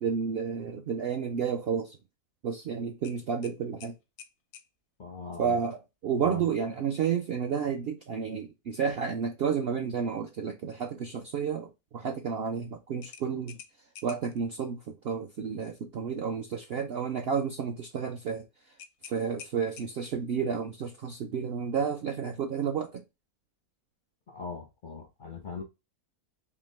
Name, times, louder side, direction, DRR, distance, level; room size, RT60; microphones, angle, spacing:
voice 1, 0.0-2.0 2.4-3.9 5.4-5.8 6.0-13.6 14.0-18.4 19.1-23.0, right 6 dB, 70° right, 0.6 m, -31 dB
sound 1, 3.0-4.7 7.3-7.6 8.0-8.1 13.0-14.4 18.8-20.2, left 8 dB, 90° left, 1.2 m, -49 dB
voice 2, 5.0-5.6 6.2-6.4 24.3-25.6, left 5 dB, 55° left, 0.6 m, -40 dB
3.6 x 2.9 x 3.2 m
omnidirectional pair, 1.6 m